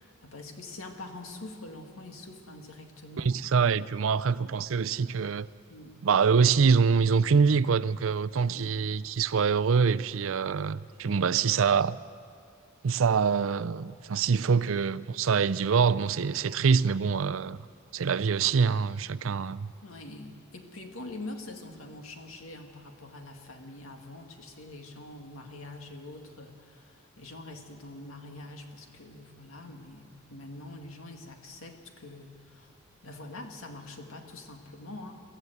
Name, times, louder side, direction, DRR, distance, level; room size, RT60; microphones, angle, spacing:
voice 1, 0.0-3.4 5.7-6.0 8.5-8.8 11.1-11.2 19.8-32.7 33.0-35.2, left 2 dB, 85° left, 2.1 m, -44 dB
voice 2, 3.2-5.5 6.0-12.0 12.8-17.6 17.9-19.7, right 5 dB, 70° right, 0.5 m, -25 dB
22.5 x 14.5 x 8.1 m
head